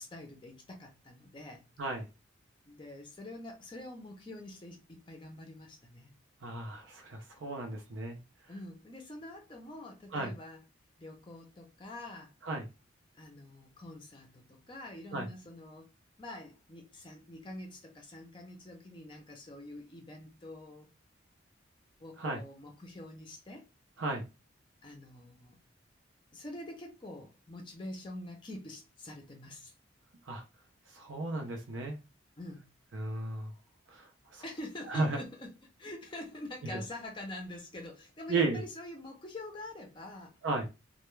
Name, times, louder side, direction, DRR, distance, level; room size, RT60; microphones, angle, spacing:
voice 1, 0.0-1.6 2.6-6.1 8.5-10.6 11.0-12.3 13.1-15.9 16.2-20.9 22.0-23.7 24.8-25.6 26.3-29.7 32.4-32.7 34.4-40.4, left 1 dB, 25° left, 0.5 m, -46 dB
voice 2, 6.4-8.2 10.1-10.3 12.4-12.6 15.1-15.3 22.2-22.4 24.0-24.2 30.3-30.4 30.9-32.0 32.9-33.5 33.9-34.4 34.9-35.2 36.7-36.8 38.3-38.6 40.4-40.7, right 3 dB, 70° right, 0.6 m, -34 dB
2.2 x 2.1 x 3.0 m
head